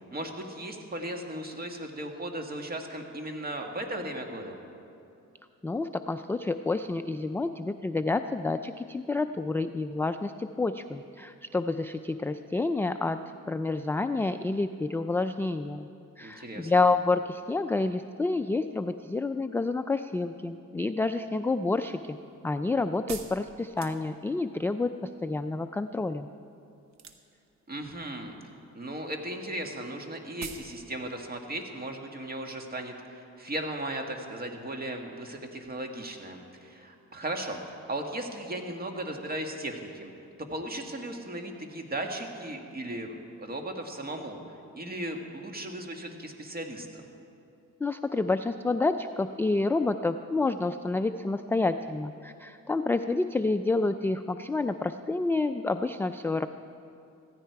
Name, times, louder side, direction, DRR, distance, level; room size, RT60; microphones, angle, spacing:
voice 1, 0.1-4.6 16.2-16.7 27.7-28.4 28.7-40.1 40.4-44.4 44.7-47.0, right 1 dB, 30° right, 3 dB, 1.8 m, -36 dB
voice 2, 5.6-13.2 13.5-15.9 16.2-22.2 22.4-24.9 25.2-26.3 47.8-56.5, left 3 dB, 10° left, 8 dB, 0.3 m, -29 dB
sound 1, 21.5-24.5 26.9-27.5 27.8-28.4 28.7-28.9 29.2-29.3 29.4-29.5 29.9-30.0 30.4-30.7 31.0-31.1, right 6 dB, 65° right, 1.1 m, -43 dB
16.0 x 14.5 x 4.7 m, 2.6 s
cardioid pair, 90°, 30 cm